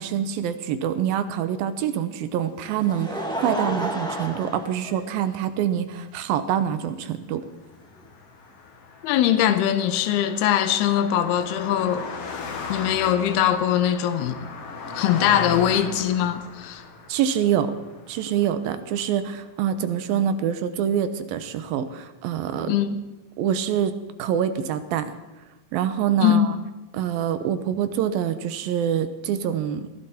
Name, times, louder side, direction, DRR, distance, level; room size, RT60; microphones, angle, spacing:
voice 1, 0.0-7.5 17.1-17.8 18.1-22.8 23.4-25.1 25.7-26.6 26.9-29.9, right 9 dB, 75° right, 11 dB, 2.5 m, -25 dB
Laughter, 2.4-5.6 6.4-6.5 8.0-8.1, equal, 5° left, 0.6 m, -31 dB
Car passing by, 7.8-19.3, left 3 dB, 50° left, 2.1 m, -37 dB
voice 2, 9.0-12.1 12.7-14.4 14.9-16.8 22.7-23.0 26.2-26.6, left 10 dB, 85° left, 11 dB, 2.9 m, -21 dB
20.5 x 15.0 x 4.3 m, 1.1 s
omnidirectional pair, 4.5 m